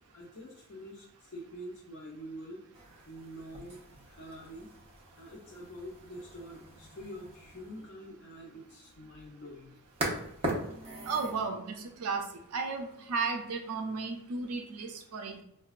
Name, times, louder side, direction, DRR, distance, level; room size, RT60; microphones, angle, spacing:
voice 1, 0.1-2.7 3.1-4.7 5.2-9.8, equal, 55° left, -4 dB, 0.5 m, -46 dB
sound 1, 2.7-11.4, right 1 dB, 25° right, 0.6 m, -41 dB
voice 2, 11.1-12.3 12.5-15.4, right 4 dB, 85° right, 5 dB, 0.4 m, -34 dB
4.7 x 2.2 x 2.3 m, 0.77 s
head